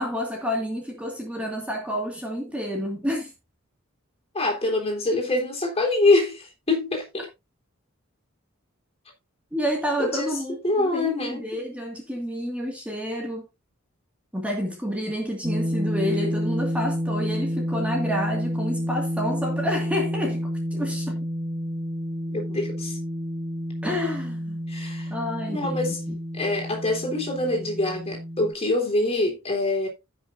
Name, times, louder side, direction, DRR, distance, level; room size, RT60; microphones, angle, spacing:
voice 1, 0.0-3.3 9.5-13.5 14.3-21.2 23.8-24.6 25.1-26.2, equal, 5° right, 1.9 m, -29 dB
voice 2, 4.3-7.3 10.0-10.3 10.6-11.5 22.3-23.0 24.7-25.1 25.5-26.0 26.3-29.9, left 2 dB, 30° left, 3.5 m, -25 dB
sound 1, 15.4-28.5, equal, 25° right, 2.2 m, -29 dB
16.0 x 6.2 x 2.6 m
head